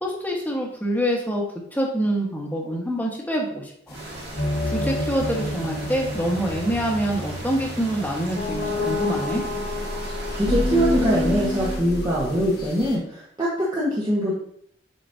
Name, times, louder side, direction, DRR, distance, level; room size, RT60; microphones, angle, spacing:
voice 1, 0.0-1.4 1.7-4.0 4.7-9.4, right 1 dB, 10° left, -2 dB, 1.3 m, -26 dB
sound 1, 3.9-13.0, left 2 dB, 55° left, 1.5 m, -28 dB
sound 2, 3.9-11.8, right 2 dB, 60° right, 2.1 m, -38 dB
voice 2, 10.1-14.3, equal, 25° right, -7 dB, 1.2 m, -23 dB
7.9 x 5.0 x 2.7 m, 0.67 s
head